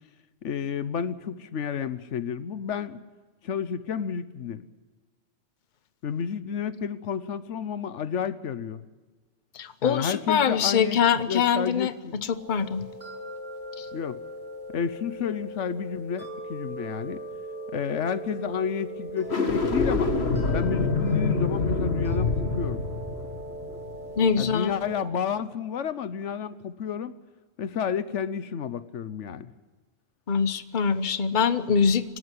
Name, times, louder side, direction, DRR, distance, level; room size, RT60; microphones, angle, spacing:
voice 1, 0.4-3.0 3.4-4.6 6.0-8.8 9.8-12.1 13.9-14.2 14.7-17.2 17.7-20.1 20.5-22.8 24.4-27.1 27.6-29.5, left 7 dB, 90° left, 14 dB, 1.2 m, -31 dB
voice 2, 9.5-12.9 13.8-13.9 24.2-24.7 30.3-32.2, left 6 dB, 45° left, 12 dB, 1.0 m, -24 dB
sound 1, 12.3-25.0, right 1 dB, 55° right, 6.4 m, -39 dB
sound 2, 19.2-24.5, left 4 dB, 60° left, 2.1 m, -26 dB
25.5 x 12.5 x 9.8 m, 1.3 s
omnidirectional pair, 1.2 m